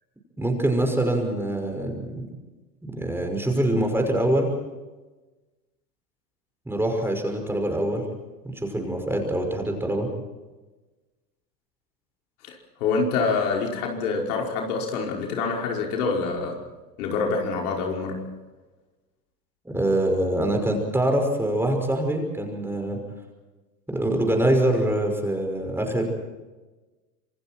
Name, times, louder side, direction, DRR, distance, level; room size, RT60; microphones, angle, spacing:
voice 1, 0.4-2.2 2.8-4.5 6.7-8.0 8.5-10.1 19.6-23.0 23.9-26.1, right 1 dB, 5° right, 3 dB, 5.7 m, -24 dB
voice 2, 12.4-16.6 17.0-18.2, left 4 dB, 60° left, 0 dB, 5.6 m, -26 dB
27.0 x 25.5 x 4.5 m, 1.2 s
hypercardioid pair, 95°, 49 cm